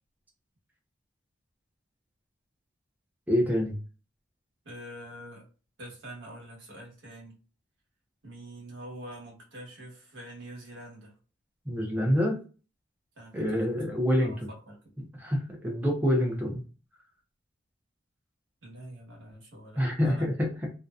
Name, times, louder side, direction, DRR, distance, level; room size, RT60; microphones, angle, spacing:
voice 1, 3.3-3.8 11.7-12.4 13.3-14.5 15.0-16.6 19.8-20.7, equal, 10° right, 0 dB, 0.5 m, -27 dB
voice 2, 4.6-5.4 5.8-7.4 8.2-11.2 13.2-14.8 18.6-20.3, right 1 dB, 75° right, -3 dB, 1.1 m, -45 dB
2.6 x 2.2 x 2.3 m, 0.36 s
head